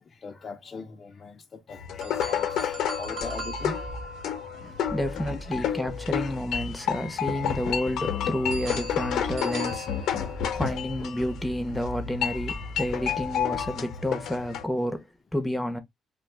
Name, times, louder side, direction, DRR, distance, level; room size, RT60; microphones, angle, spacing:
voice 1, 0.1-4.2 4.6-4.8 5.1-5.8 6.2-6.3 8.2-8.4 13.9-14.0, left 4 dB, 40° left, 0.5 m, -41 dB
sound 1, 1.7-14.6, left 9 dB, 80° left, 0.6 m, -31 dB
sound 2, 2.0-6.1 8.5-10.8, right 2 dB, 70° right, 1.0 m, -41 dB
sound 3, 3.2-4.2 4.8-6.8 7.5-8.3 8.5-9.5 10.2-13.8, right 1 dB, 25° right, 0.7 m, -40 dB
voice 2, 4.9-15.0 15.3-15.8, left 1 dB, 5° left, 0.8 m, -30 dB
2.5 x 2.2 x 3.5 m
cardioid pair, 90°, 0 cm